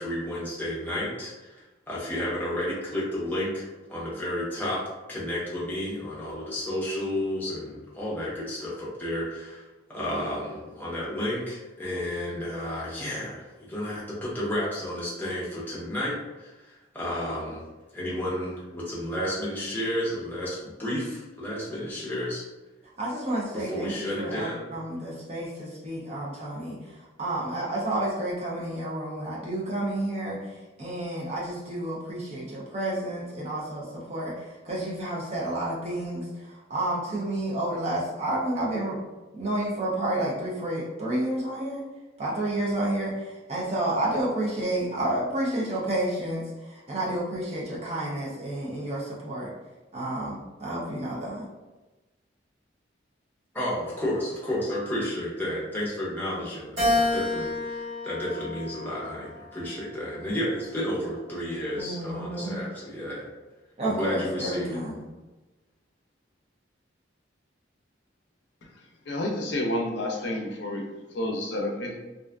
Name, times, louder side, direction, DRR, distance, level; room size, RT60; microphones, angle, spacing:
voice 1, 0.0-17.7 17.9-22.4 23.5-24.6 53.5-63.3 63.8-64.8, left 1 dB, 10° left, -7 dB, 0.6 m, -32 dB
voice 2, 23.0-30.5 30.8-39.0 39.3-41.8 42.2-49.5 49.9-51.4 61.8-62.6 63.8-65.0, right 1 dB, 35° right, -5 dB, 0.5 m, -30 dB
Keyboard (musical), 56.8-59.3 59.9-61.1, left 2 dB, 60° right, 1.5 m, -29 dB
voice 3, 69.1-70.8 71.1-72.0, left 1 dB, 65° left, 1 dB, 0.5 m, -29 dB
2.4 x 2.3 x 2.3 m, 1.1 s
head